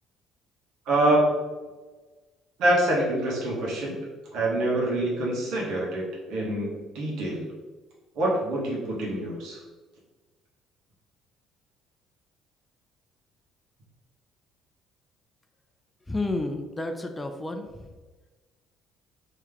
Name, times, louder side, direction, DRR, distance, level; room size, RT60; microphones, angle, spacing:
voice 1, 0.9-1.3 2.6-3.9 4.3-7.4 8.1-9.6, right 1 dB, 75° right, -4 dB, 1.4 m, -25 dB
voice 2, 16.1-17.7, left 2 dB, 15° left, 6 dB, 0.5 m, -30 dB
3.2 x 3.2 x 3.5 m, 1.3 s
supercardioid pair, 75°, 0 cm